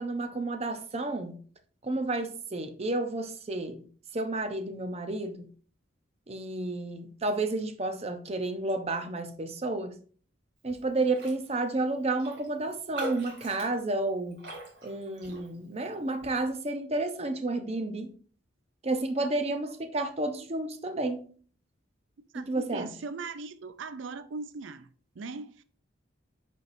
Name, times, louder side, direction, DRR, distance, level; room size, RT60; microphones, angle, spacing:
voice 1, 0.0-1.4 1.8-3.8 4.1-5.5 6.3-10.0 10.6-14.4 14.8-18.1 18.8-21.3 22.3-22.9, right 2 dB, 35° right, 0.7 m, -31 dB
Raindrop, 11.1-11.4 11.7-11.8 12.2-15.8 16.2-16.5, right 2 dB, 65° right, 2.4 m, -42 dB
voice 2, 22.3-24.9 25.2-25.6, right 3 dB, 85° right, 0.5 m, -39 dB
9.6 x 4.6 x 2.6 m
head